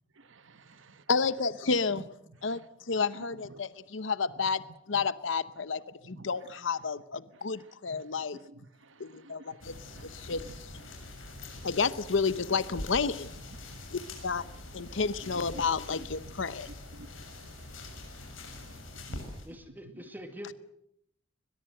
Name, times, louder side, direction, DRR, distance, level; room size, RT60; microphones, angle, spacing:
voice 1, 0.1-1.0 1.9-3.7 4.9-5.0 6.0-6.6 7.2-11.7 13.5-19.2 19.7-20.0, right 2 dB, 75° right, 13 dB, 1.3 m, -54 dB
voice 2, 1.1-2.0 2.4-2.6 2.9-4.6 4.9-8.4 9.0-9.7 10.0-10.4 11.6-13.3 13.9-14.4 14.7-16.7, left 5 dB, 70° left, 15 dB, 0.9 m, -30 dB
sound 1, 9.6-19.5, left 2 dB, 85° left, 7.0 m, -44 dB
voice 3, 19.5-20.5, equal, 10° right, 7 dB, 2.2 m, -44 dB
22.0 x 22.0 x 7.8 m, 0.76 s
head